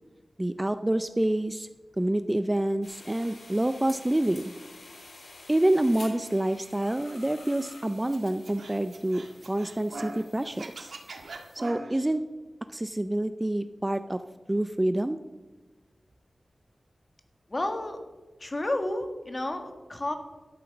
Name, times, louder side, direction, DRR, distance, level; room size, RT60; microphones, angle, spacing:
voice 1, 0.4-1.7 2.0-4.5 5.5-10.9 11.5-12.2 12.7-14.2 14.5-15.2, right 1 dB, 15° right, 11 dB, 0.5 m, -27 dB
sound 1, 2.8-11.6, left 2 dB, 85° left, 3.4 m, -50 dB
Scratching (performance technique), 8.1-10.2 10.5-12.1, right 2 dB, 80° right, 1.8 m, -41 dB
voice 2, 17.5-18.0 18.4-20.1, left 1 dB, 30° left, 6 dB, 1.6 m, -31 dB
12.0 x 8.8 x 7.1 m, 1.2 s
wide cardioid pair, 100°, 0 cm